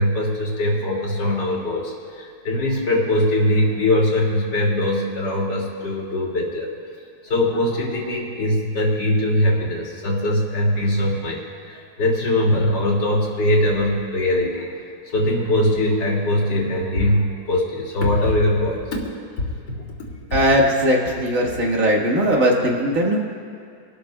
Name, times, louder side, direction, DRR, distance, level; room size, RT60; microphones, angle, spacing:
voice 1, 0.0-6.7 7.2-14.7 15.1-18.8, left 1 dB, 70° left, -3 dB, 3.0 m, -21 dB
voice 2, 20.3-23.2, equal, 45° right, -2 dB, 2.0 m, -19 dB
27.5 x 13.0 x 2.3 m, 2.3 s
omnidirectional pair, 2.0 m